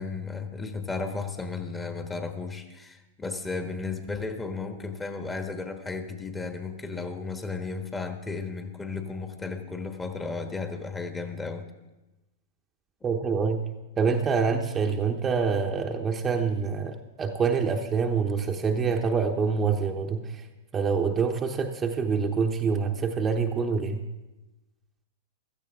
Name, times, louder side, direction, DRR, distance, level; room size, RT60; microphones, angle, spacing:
voice 1, 0.0-11.7, left 4 dB, 15° left, 6 dB, 1.3 m, -34 dB
voice 2, 13.0-13.6 14.0-20.5 20.7-24.0, right 5 dB, 20° right, 3 dB, 0.9 m, -26 dB
15.5 x 13.5 x 3.6 m, 1.1 s
hypercardioid pair, 105°, 0 cm